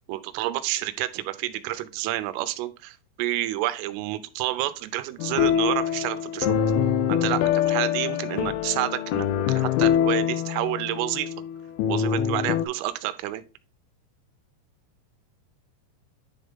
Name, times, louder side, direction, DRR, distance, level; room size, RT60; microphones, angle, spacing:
voice 1, 0.0-6.6 7.1-11.3 11.9-13.4, right 15 dB, 90° right, 12 dB, 3.3 m, -29 dB
sound 1, 5.2-12.7, left 9 dB, 85° left, 3.0 m, -24 dB
10.0 x 3.5 x 3.7 m, 0.32 s
omnidirectional pair, 5.7 m